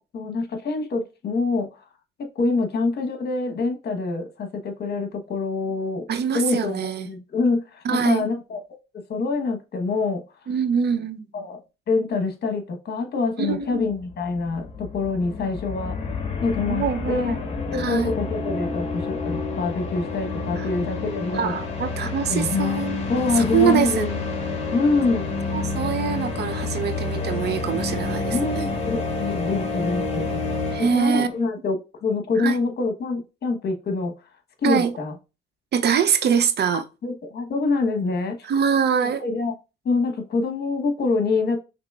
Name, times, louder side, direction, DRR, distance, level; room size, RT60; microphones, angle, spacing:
voice 1, 0.1-1.8 2.2-6.1 6.3-8.6 9.1-10.2 11.3-11.6 11.9-16.0 16.4-21.5 22.3-22.8 23.1-24.3 24.7-25.3 28.3-30.4 30.8-34.1 34.6-35.1 36.7-38.5 39.2-39.5 39.8-41.6, left 3 dB, 55° left, 1.1 m, -25 dB
voice 2, 6.1-7.1 7.8-8.3 10.5-11.2 13.4-13.8 16.7-17.3 17.8-18.1 21.3-23.1 23.4-24.1 25.5-28.7 30.7-31.3 32.4-32.6 34.6-34.9 35.7-36.8 38.4-39.2, right 7 dB, 55° right, 0.6 m, -24 dB
sound 1, 13.6-13.7 13.9-31.4, left 3 dB, 35° left, 1.4 m, -29 dB
5.8 x 3.0 x 2.3 m
cardioid pair, 90°, 20 cm